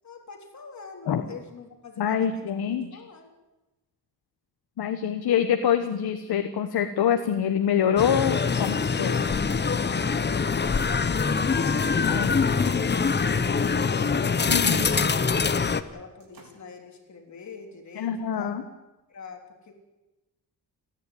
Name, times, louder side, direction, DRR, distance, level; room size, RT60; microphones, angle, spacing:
voice 1, 0.0-3.3 14.7-18.6 19.1-19.8, left 5 dB, 50° left, 3 dB, 3.5 m, -45 dB
voice 2, 2.0-3.0 4.8-9.3 12.1-12.3 14.5-14.9 18.0-18.6, left 8 dB, 80° left, 7 dB, 1.4 m, -25 dB
sound 1, 8.0-15.8, left 5 dB, 30° left, 0.9 m, -24 dB
sound 2, 11.0-12.8 13.3-15.2 15.5-15.9 16.2-16.8, right 3 dB, 65° right, 4.6 m, -50 dB
30.0 x 10.5 x 9.8 m, 1.0 s
wide cardioid pair, 140°, 37 cm